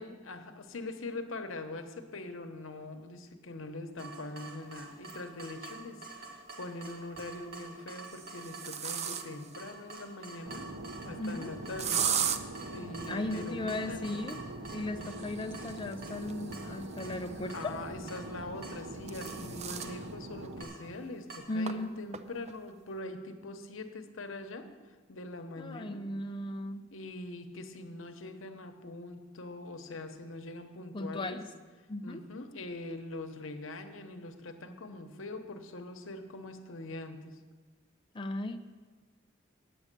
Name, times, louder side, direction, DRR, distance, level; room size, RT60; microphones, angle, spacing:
voice 1, 0.0-10.7 11.0-12.0 12.7-14.2 17.4-24.7 25.1-26.0 26.9-31.4 32.0-37.4, left 2 dB, 90° left, 7 dB, 1.0 m, -43 dB
Water tap faucet / Drip, 4.0-21.4, right 3 dB, 50° right, 1.6 m, -49 dB
sound 1, 5.4-5.5 7.0-7.4 8.0-9.6 11.8-12.4 15.0-17.6 18.6-20.0 20.4-20.5 20.9-21.0 21.7-21.8 22.1-22.5, right 8 dB, 35° right, 0.5 m, -36 dB
Fixed-wing aircraft airplane, 10.4-20.6, right 2 dB, 85° right, 0.9 m, -43 dB
voice 2, 11.2-11.5 13.1-14.4 14.7-17.7 21.5-22.0 25.6-26.8 30.9-31.5 31.9-32.2 38.1-38.6, left 2 dB, 25° left, 5 dB, 0.5 m, -36 dB
9.4 x 8.3 x 6.8 m, 1.4 s
head